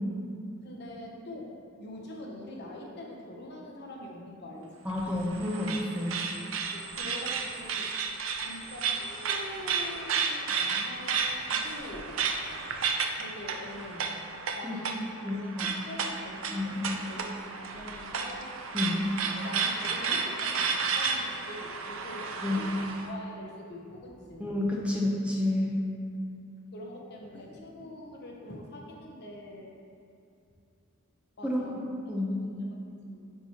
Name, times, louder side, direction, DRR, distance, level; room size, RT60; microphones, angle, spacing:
voice 1, 0.6-4.9 6.7-7.9 8.4-11.2 11.5-12.1 13.2-14.2 14.5-18.5 19.3-22.7 23.0-24.5 26.7-29.7 31.4-31.8 32.1-32.7 33.1-33.3, left 1 dB, 55° left, -1 dB, 0.8 m, -44 dB
voice 2, 4.8-6.2 14.6-14.8 15.2-15.8 16.5-16.9 18.7-19.0 22.4-22.6 24.4-25.8 31.4-31.6 32.1-32.4, left 1 dB, 5° right, -3 dB, 0.7 m, -30 dB
sound 1, 4.9-23.1, right 5 dB, 70° right, 0.5 m, -32 dB
9.1 x 4.4 x 2.9 m, 2.5 s
head